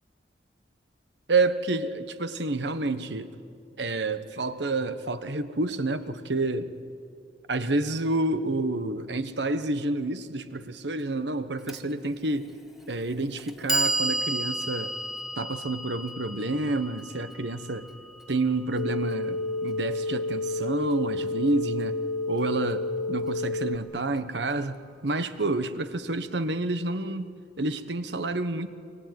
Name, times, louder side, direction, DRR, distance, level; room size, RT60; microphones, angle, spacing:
voice 1, 1.3-3.3 3.8-6.7 7.5-12.5 12.9-14.9 15.4-17.9 18.3-22.0 22.3-28.7, right 2 dB, 75° right, 11 dB, 1.2 m, -29 dB
Clock, 11.7-11.8 12.8-12.9 13.4-19.4, right 1 dB, ahead, 1.5 m, -32 dB
sound 1, 18.8-23.8, left 2 dB, 90° left, 0.7 m, -30 dB
24.5 x 22.0 x 9.5 m, 2.4 s
head